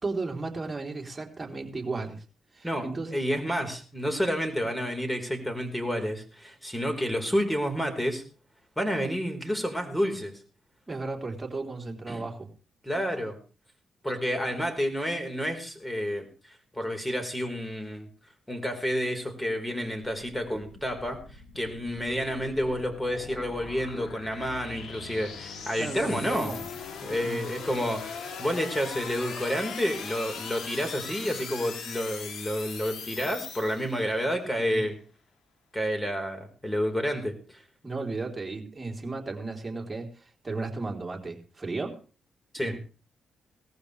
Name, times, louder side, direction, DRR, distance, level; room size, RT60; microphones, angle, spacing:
voice 1, 0.0-2.2 2.5-3.2 10.9-12.5 25.8-26.6 27.1-27.5 34.7-34.9 37.8-42.0 42.6-42.8, right 3 dB, 25° right, 2 dB, 3.7 m, -34 dB
voice 2, 2.6-8.2 8.8-10.3 12.1-12.2 12.8-13.4 14.0-16.3 16.7-18.1 18.5-21.2 21.5-26.5 27.0-35.0 35.7-37.3 42.5-42.7, equal, 10° left, 6 dB, 4.5 m, -30 dB
sound 1, 20.1-34.2, left 6 dB, 80° left, 3.0 m, -40 dB
18.5 x 14.5 x 3.4 m, 0.36 s
supercardioid pair, 55°, 0 cm